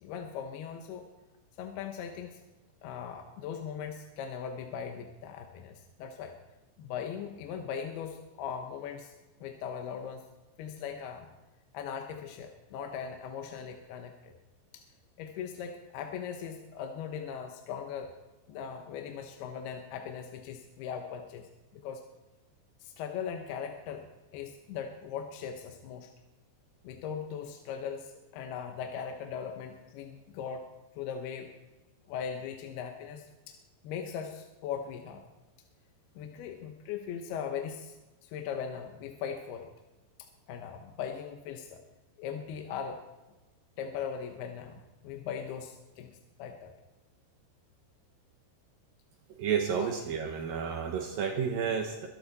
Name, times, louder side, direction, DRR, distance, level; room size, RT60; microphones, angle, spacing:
voice 1, 0.0-1.1 1.6-2.4 2.8-6.4 6.8-9.1 9.4-10.2 10.6-11.3 11.7-14.3 14.7-14.8 15.2-18.1 18.5-22.0 22.8-24.1 24.3-26.1 26.8-30.6 31.0-31.5 32.1-33.6 33.8-35.2 36.2-38.0 38.2-39.7 40.2-41.8 42.2-43.0 43.8-46.1 46.4-46.7 49.8-49.9, left 7 dB, 70° left, 4 dB, 2.7 m, -39 dB
voice 2, 49.4-52.1, right 7 dB, 70° right, 3 dB, 2.2 m, -31 dB
22.5 x 12.0 x 4.1 m, 1.1 s
omnidirectional pair, 5.3 m